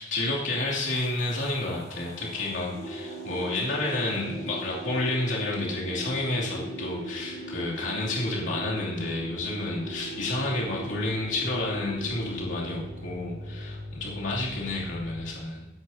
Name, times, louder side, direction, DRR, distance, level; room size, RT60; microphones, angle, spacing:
voice 1, 0.0-15.7, left 2 dB, 75° left, -5 dB, 2.8 m, -30 dB
sound 1, 0.6-15.1, equal, 60° right, 4.1 m, -44 dB
sound 2, 2.7-12.8, right 1 dB, 30° left, 3.9 m, -39 dB
16.0 x 11.5 x 2.8 m, 0.98 s
head